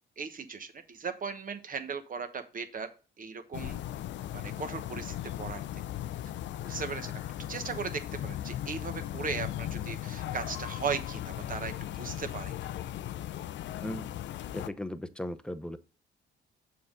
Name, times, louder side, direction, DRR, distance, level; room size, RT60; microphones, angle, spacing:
voice 1, 0.2-2.9 3.2-3.8 4.3-5.6 6.6-7.1 7.5-12.5, right 5 dB, 45° right, 8 dB, 1.1 m, -37 dB
sound 1, 3.5-14.7, left 12 dB, 65° left, 0.4 m, -37 dB
voice 2, 13.8-14.2 14.5-15.8, left 1 dB, 5° left, 12 dB, 0.6 m, -37 dB
6.9 x 3.8 x 6.3 m, 0.35 s
cardioid pair, 90°, 20 cm